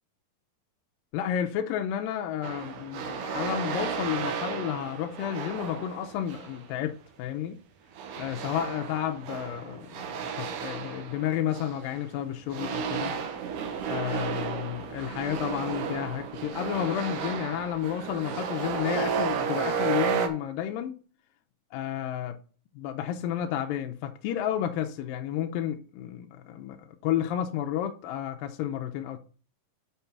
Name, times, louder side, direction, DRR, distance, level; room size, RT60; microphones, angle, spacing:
voice 1, 1.1-7.6 8.2-13.2 13.9-20.9 21.7-22.4 22.8-26.8 27.0-29.2, left 10 dB, 80° left, 2.4 m, -31 dB
sound 1, 2.4-6.6 8.0-12.1 12.5-20.3, right 6 dB, 70° right, 2.5 m, -33 dB
6.9 x 5.3 x 5.8 m
omnidirectional pair, 4.0 m